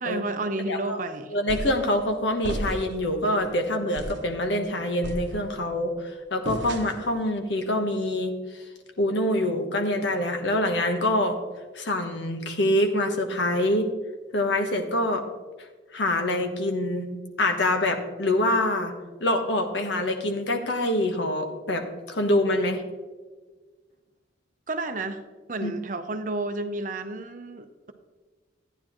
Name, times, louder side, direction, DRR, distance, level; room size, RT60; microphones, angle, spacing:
voice 1, 0.0-1.4 24.7-25.2 25.5-27.9, right 2 dB, 45° right, 8 dB, 0.6 m, -31 dB
voice 2, 0.7-1.0 1.3-8.3 9.0-11.4 11.7-13.9 14.3-15.3 15.9-17.1 17.4-18.9 19.2-22.8 25.6-25.7, left 1 dB, 75° left, 5 dB, 1.1 m, -25 dB
sound 1, 1.5-1.9 2.4-3.0 3.4-3.6 4.0-4.3 5.0-5.7 6.5-7.2, right 1 dB, 75° right, 0.8 m, -34 dB
12.0 x 9.7 x 3.0 m, 1.4 s
head